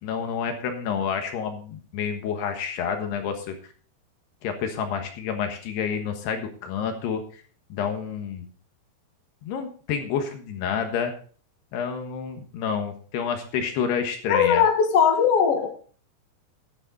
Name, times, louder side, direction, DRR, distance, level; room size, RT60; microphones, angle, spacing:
voice 1, 0.0-3.6 4.4-7.4 7.7-8.5 9.4-11.1 11.7-14.7, left 7 dB, 80° left, 6 dB, 3.4 m, -29 dB
voice 2, 14.3-15.7, left 7 dB, 50° left, 4 dB, 1.9 m, -19 dB
11.5 x 10.0 x 4.0 m, 0.42 s
omnidirectional pair, 4.8 m